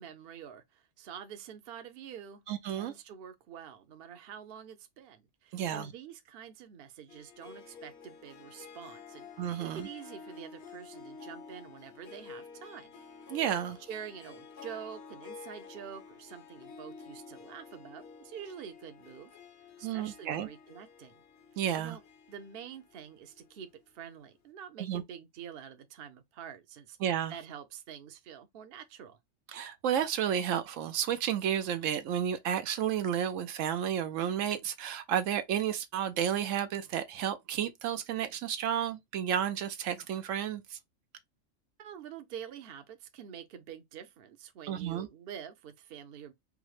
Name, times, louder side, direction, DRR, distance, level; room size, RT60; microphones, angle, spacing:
voice 1, 0.0-2.4 2.7-9.3 9.6-12.9 13.9-19.3 19.8-21.2 21.5-22.0 22.3-27.0 27.3-29.2 41.8-46.3, right 8 dB, 55° right, 0.8 m, -47 dB
voice 2, 2.5-2.9 5.5-5.9 9.4-9.9 13.3-13.8 19.8-20.5 21.6-22.0 24.8-25.0 27.0-27.3 29.5-40.8 44.7-45.1, right 9 dB, 85° right, 1.0 m, -32 dB
Harp, 7.1-23.9, left 5 dB, 60° left, 1.1 m, -51 dB
4.8 x 2.1 x 3.0 m
omnidirectional pair, 1.3 m